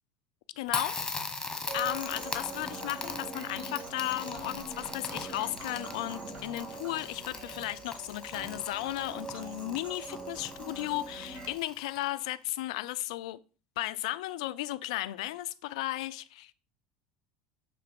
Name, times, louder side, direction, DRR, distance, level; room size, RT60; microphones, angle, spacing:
voice 1, 0.6-1.0 1.7-13.4 13.8-16.5, left 16 dB, 75° left, 0.4 m, -35 dB
Crackle, 0.7-12.3, left 3 dB, 15° left, 1.4 m, -40 dB
sound 1, 1.7-11.5, right 3 dB, 35° right, 2.9 m, -43 dB
6.8 x 3.2 x 5.2 m
hypercardioid pair, 85°, 4 cm